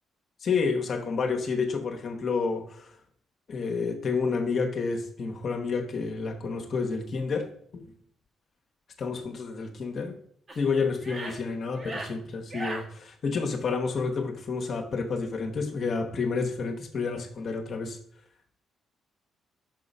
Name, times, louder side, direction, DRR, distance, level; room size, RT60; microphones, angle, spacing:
voice 1, 0.4-2.9 3.5-7.9 9.0-10.2 10.5-18.0, left 4 dB, 55° left, 3 dB, 1.0 m, -30 dB
sound 1, 10.5-10.6 11.0-11.4 11.7-12.1 12.5-12.8, right 2 dB, 30° right, 1.3 m, -37 dB
5.9 x 3.8 x 5.4 m, 0.64 s
cardioid pair, 90°, 0 cm